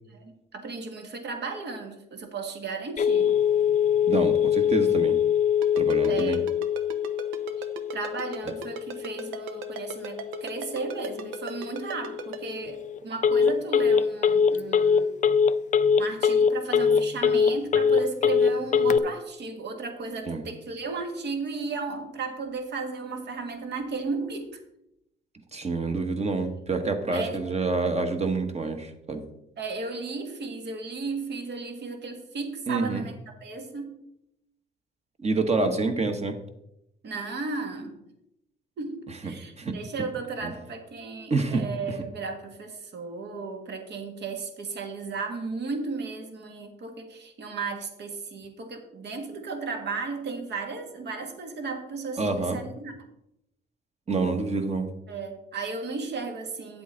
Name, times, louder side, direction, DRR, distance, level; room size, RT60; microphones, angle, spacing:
voice 1, 0.1-3.4 6.1-6.5 7.6-7.7 7.9-15.2 16.0-24.6 27.1-27.4 29.6-34.0 37.0-38.0 38.8-53.1 55.1-56.8, right 4 dB, 60° right, 5 dB, 1.7 m, -35 dB
Telephone, 3.0-19.0, left 7 dB, 40° left, 0.4 m, -24 dB
voice 2, 4.1-5.2 5.7-6.4 20.3-20.4 25.5-29.2 32.7-33.0 35.2-36.4 39.2-39.8 40.4-40.5 41.3-41.6 52.2-52.6 54.1-54.9, right 3 dB, 35° right, 6 dB, 1.3 m, -27 dB
Ringtone, 5.6-12.4, right 8 dB, 85° right, 0.8 m, -37 dB
8.9 x 7.9 x 3.9 m, 0.82 s
cardioid pair, 90°, 20 cm